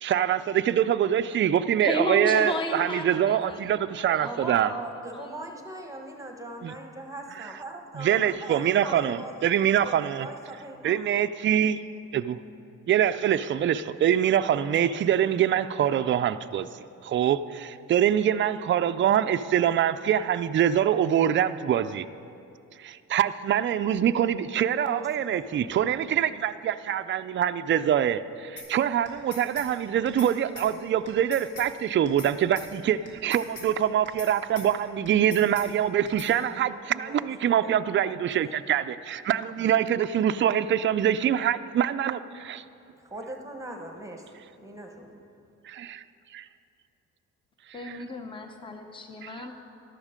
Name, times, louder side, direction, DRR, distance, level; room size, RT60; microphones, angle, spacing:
voice 1, 0.0-4.7 6.6-6.7 8.0-10.3 10.8-11.8 12.1-12.4 12.9-16.7 17.0-22.1 22.8-42.6 45.6-46.0 46.3-46.5, right 10 dB, 40° right, 11 dB, 0.4 m, -24 dB
voice 2, 1.8-4.8 5.1-5.3 47.7-49.5, equal, 15° left, 4 dB, 0.9 m, -33 dB
voice 3, 4.2-11.1 24.7-25.5 36.9-37.3 37.6-38.3 43.0-44.3 44.6-45.2, right 1 dB, 10° right, 2 dB, 1.2 m, -40 dB
sound 1, 28.6-28.7 29.0-29.7 30.0-30.3 30.5-30.7 31.0-31.7 32.0-32.3 32.5-32.7 33.0-33.7 34.0-34.3 34.5-34.7 35.0-35.7 36.0-36.3, left 3 dB, 75° left, 3.5 m, -41 dB
13.5 x 11.5 x 5.1 m, 2.6 s
cardioid pair, 90°, 30 cm